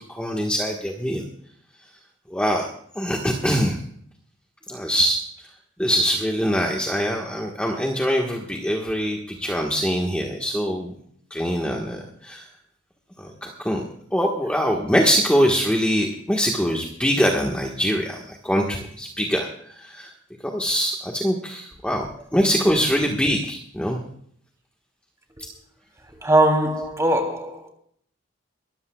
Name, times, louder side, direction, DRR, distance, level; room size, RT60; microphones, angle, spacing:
voice 1, 0.1-1.2 2.3-2.7 2.9-3.8 4.7-5.2 5.8-10.9 11.3-12.5 13.2-13.8 14.1-19.5 19.8-20.1 20.5-22.1 22.3-24.0, equal, 5° left, 1.4 m, -23 dB
voice 2, 26.2-27.7, right 1 dB, 15° right, 3.1 m, -20 dB
23.0 x 14.0 x 2.3 m
head